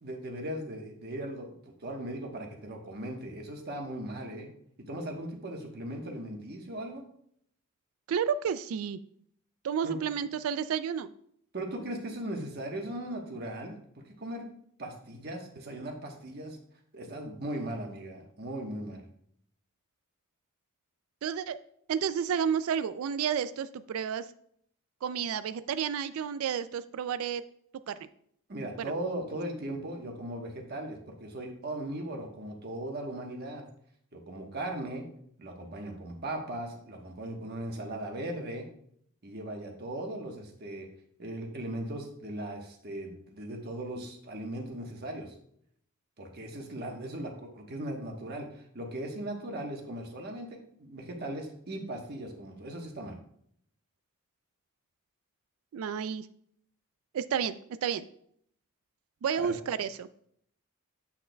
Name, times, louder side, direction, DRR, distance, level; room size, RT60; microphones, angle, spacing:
voice 1, 0.0-1.5 1.8-4.5 4.9-7.0 9.8-10.0 11.5-13.7 14.2-14.4 14.8-16.6 16.9-19.0 28.5-33.6 34.1-35.1 35.4-38.6 39.2-40.9 41.2-45.3 46.2-53.2 59.3-59.6, right 1 dB, 50° right, 2 dB, 1.2 m, -38 dB
voice 2, 8.1-9.0 9.6-11.1 21.2-21.6 21.9-24.2 25.0-27.4 27.9-28.0 28.8-28.9 55.7-56.3 57.1-57.5 57.8-58.0 59.2-60.3, right 7 dB, 75° right, 13 dB, 0.3 m, -31 dB
8.5 x 6.3 x 2.3 m, 0.67 s
head